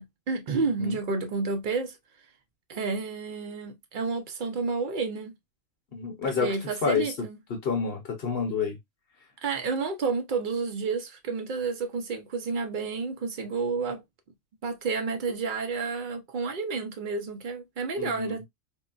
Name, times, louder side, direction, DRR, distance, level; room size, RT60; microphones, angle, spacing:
voice 1, 0.0-2.0 2.7-5.3 6.2-7.4 9.4-14.0 14.6-18.4, right 4 dB, 55° right, 0.5 m, -30 dB
voice 2, 0.6-1.0 5.9-6.6 6.8-8.8 18.0-18.4, left 5 dB, 50° left, 0.9 m, -29 dB
3.7 x 2.1 x 2.3 m
omnidirectional pair, 1.4 m